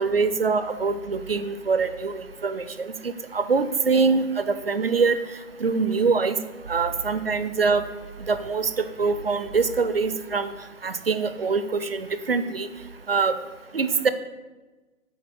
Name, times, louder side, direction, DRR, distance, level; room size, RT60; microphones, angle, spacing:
voice 1, 0.0-5.2 5.6-6.4 6.7-7.8 8.3-10.5 10.8-12.7 13.1-13.3 13.7-14.1, right 4 dB, 50° right, 11 dB, 0.5 m, -24 dB
8.5 x 3.3 x 6.3 m, 1.2 s
hypercardioid pair, 170°, 39 cm